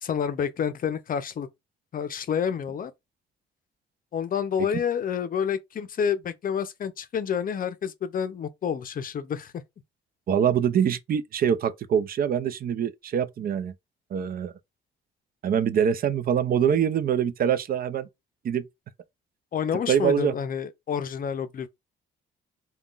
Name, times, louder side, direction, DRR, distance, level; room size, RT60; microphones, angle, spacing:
voice 1, 0.0-1.5 1.9-2.9 4.1-9.6 19.5-21.7, left 7 dB, 45° left, 0.5 m, -29 dB
voice 2, 10.3-13.7 14.1-14.5 15.4-18.1 18.4-18.6 19.9-20.3, right 8 dB, 50° right, 0.4 m, -24 dB
3.5 x 2.3 x 2.4 m
cardioid pair, 90°, 20 cm